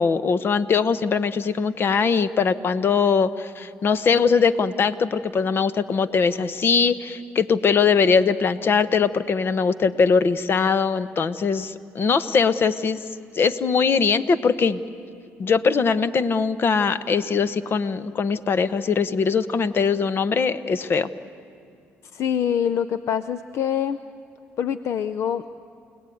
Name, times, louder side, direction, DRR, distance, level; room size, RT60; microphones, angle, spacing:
voice 1, 0.0-13.0 13.3-14.8 15.4-21.1, left 5 dB, 50° left, 14 dB, 1.1 m, -21 dB
voice 2, 22.1-24.0 24.6-25.5, left 8 dB, 65° left, 12 dB, 0.6 m, -25 dB
29.5 x 18.5 x 9.4 m, 2.4 s
cardioid pair, 80°, 5 cm